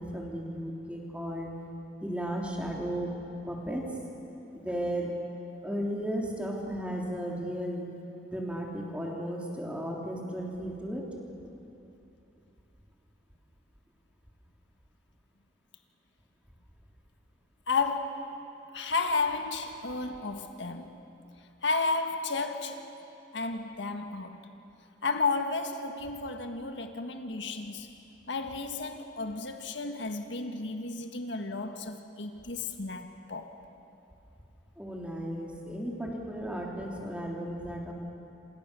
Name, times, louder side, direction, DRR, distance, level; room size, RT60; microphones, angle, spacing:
voice 1, 0.0-1.5 2.0-3.1 3.5-3.8 4.5-5.2 5.6-7.9 8.3-11.0 34.8-37.9, equal, 5° right, 3.4 m, -34 dB
voice 2, 17.7-18.4 18.7-21.0 21.6-22.9 23.3-24.5 25.0-27.9 28.3-33.6, left 3 dB, 75° left, 1.6 m, -32 dB
27.5 x 27.0 x 6.9 m
head